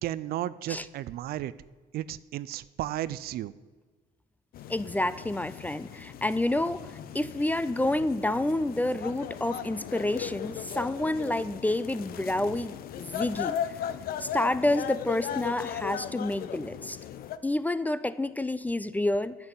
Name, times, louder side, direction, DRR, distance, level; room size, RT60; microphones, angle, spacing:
voice 1, 0.0-1.5 1.9-3.5, right 13 dB, 65° right, 18 dB, 0.4 m, -33 dB
sound 1, 4.5-17.4, left 9 dB, 60° left, 0.6 m, -37 dB
voice 2, 4.7-13.6 14.2-17.0 17.4-19.4, left 1 dB, 10° left, 15 dB, 0.3 m, -29 dB
9.6 x 5.9 x 8.1 m, 1.4 s
cardioid pair, 110°, 17 cm